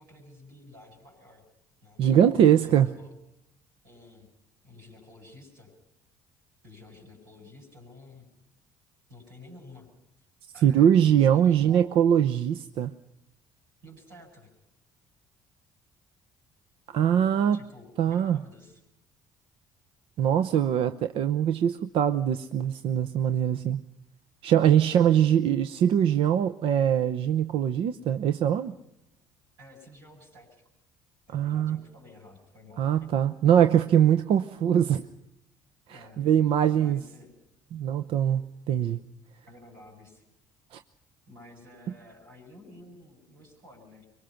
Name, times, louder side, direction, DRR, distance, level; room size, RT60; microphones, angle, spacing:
voice 1, 0.0-1.4 1.8-2.0 2.4-3.1 3.8-4.3 4.6-5.7 6.6-8.3 9.1-9.9 10.5-11.9 13.8-14.5 17.5-18.8 23.3-23.4 24.9-25.4 29.6-30.6 31.3-33.1 35.9-36.2 36.7-37.3 39.5-40.2 41.3-44.1, left 2 dB, 85° right, -1 dB, 7.9 m, -51 dB
voice 2, 2.0-2.9 10.6-12.9 16.9-17.6 18.0-18.4 20.2-23.8 24.4-28.7 31.3-31.8 32.8-35.0 36.2-37.0 37.7-39.0 40.7-40.8, right 9 dB, 60° right, 9 dB, 0.8 m, -22 dB
25.5 x 23.0 x 5.9 m, 0.82 s
hypercardioid pair, 55°, 11 cm